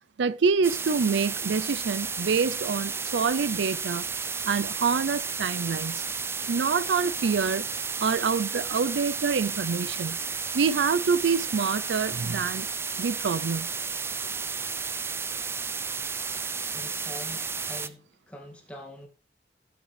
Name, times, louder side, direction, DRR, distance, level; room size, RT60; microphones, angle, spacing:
voice 1, 0.2-4.1 4.5-6.0 6.5-7.7 8.0-10.2 10.5-12.7 13.0-13.7, right 5 dB, 90° right, 0.5 m, -26 dB
sound 1, 0.6-17.9, right 5 dB, 15° right, 0.4 m, -32 dB
voice 2, 16.7-19.1, equal, 5° left, 2.1 m, -44 dB
17.5 x 6.5 x 3.3 m
head